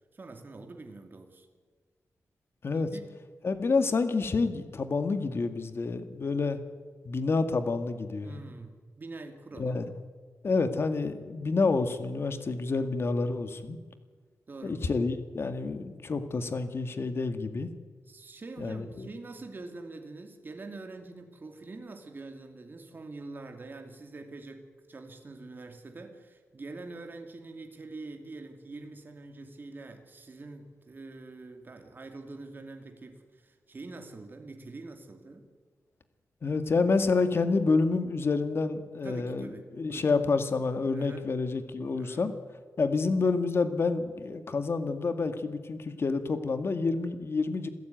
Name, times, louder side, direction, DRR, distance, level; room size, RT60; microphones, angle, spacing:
voice 1, 0.1-1.5 2.9-3.1 8.2-9.9 12.7-12.9 14.5-14.8 18.1-35.5 39.0-40.1 40.9-41.2 42.0-42.3, right 3 dB, 35° right, 5 dB, 2.6 m, -45 dB
voice 2, 3.4-6.6 7.0-8.5 9.6-9.9 10.4-13.8 14.6-17.7 18.6-19.1 36.4-39.5 39.8-42.3 42.8-47.7, left 4 dB, 45° left, 9 dB, 2.1 m, -28 dB
27.5 x 16.0 x 9.4 m, 1.5 s
wide cardioid pair, 120°, 6 cm